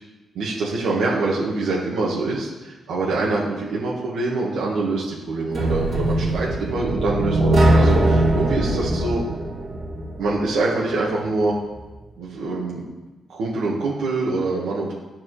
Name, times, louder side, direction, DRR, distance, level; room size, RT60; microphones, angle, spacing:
voice 1, 0.3-9.2 10.2-11.5 12.2-12.8 13.3-14.9, right 3 dB, 90° right, -5 dB, 1.5 m, -24 dB
sound 1, 5.5-10.5, right 1 dB, 55° right, 2.2 m, -20 dB
11.5 x 4.7 x 3.2 m, 1.1 s
cardioid pair, 75°, 0 cm